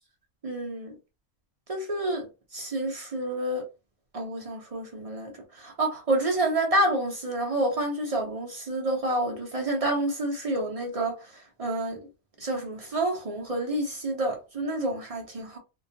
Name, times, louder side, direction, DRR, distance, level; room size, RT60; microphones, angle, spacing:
voice 1, 0.4-0.9 1.7-3.6 4.1-11.2 11.6-12.0 12.4-15.6, right 1 dB, 45° right, 0.4 m, -28 dB
2.3 x 2.2 x 2.7 m
omnidirectional pair, 1.4 m